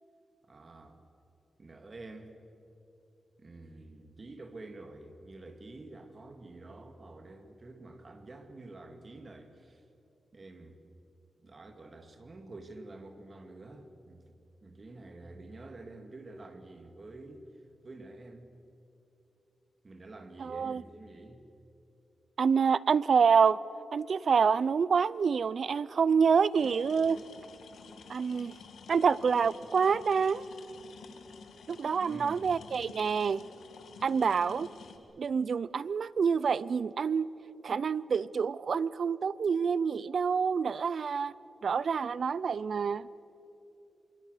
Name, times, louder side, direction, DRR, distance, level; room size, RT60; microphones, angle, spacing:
voice 1, 0.4-1.0 1.6-2.3 3.4-9.8 10.3-10.8 11.4-17.5 17.8-18.5 19.8-21.4 28.1-28.6 32.0-32.6, right 2 dB, 40° right, 2.4 m, -48 dB
voice 2, 20.4-20.8 22.4-23.6 23.9-27.2 28.1-28.5 28.9-30.4 31.7-33.4 34.0-34.7 35.2-37.3 37.6-41.3 41.6-43.1, right 6 dB, 60° right, 0.5 m, -27 dB
sound 1, 26.6-35.0, left 5 dB, 90° left, 2.0 m, -51 dB
26.5 x 24.0 x 6.7 m
cardioid pair, 90°, 0 cm